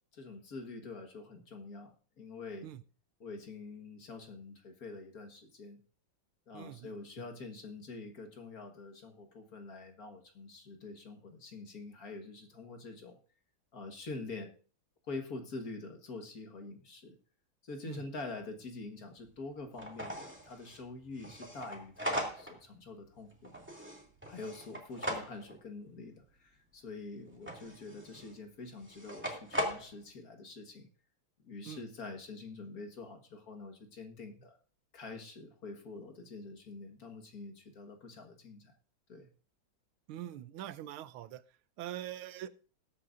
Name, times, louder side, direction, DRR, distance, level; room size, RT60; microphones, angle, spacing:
voice 1, 0.1-2.7 3.2-5.8 6.5-13.2 13.7-14.5 15.1-17.2 17.6-23.5 24.3-30.9 31.4-34.6 34.9-38.7 39.1-39.3, left 3 dB, 45° left, 4 dB, 1.8 m, -46 dB
voice 2, 6.5-6.9 17.9-18.0 31.6-31.8 40.1-41.4 41.8-42.5, right 12 dB, 90° right, 14 dB, 1.5 m, -43 dB
sound 1, 18.6-18.7 19.3-19.4 19.8-22.7 23.0-25.6 27.3-28.4 28.8-29.9, equal, 5° right, 2.1 m, -39 dB
20.0 x 8.6 x 2.6 m, 0.38 s
omnidirectional pair, 2.3 m